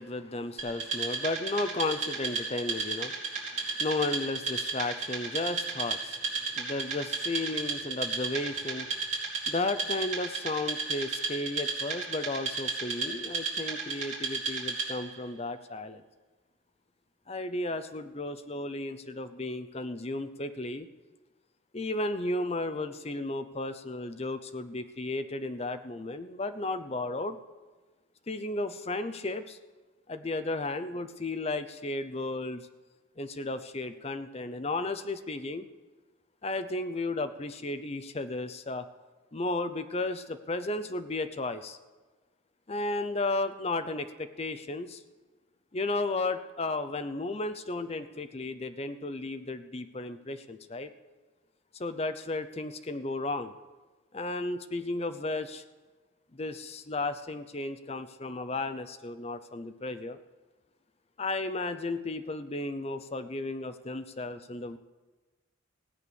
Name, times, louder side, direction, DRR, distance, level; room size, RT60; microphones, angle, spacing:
voice 1, 0.0-9.0 9.5-16.0 17.3-20.9 21.7-27.4 28.3-29.6 30.1-32.7 33.2-35.6 36.4-38.9 39.3-41.8 42.7-45.0 45.7-50.9 51.8-53.6 54.1-55.6 56.3-60.2 61.2-64.8, left 2 dB, 30° left, 10 dB, 0.6 m, -34 dB
Wood, 0.6-15.1, right 4 dB, 35° right, 3.5 m, -34 dB
16.5 x 8.1 x 7.0 m, 1.3 s
head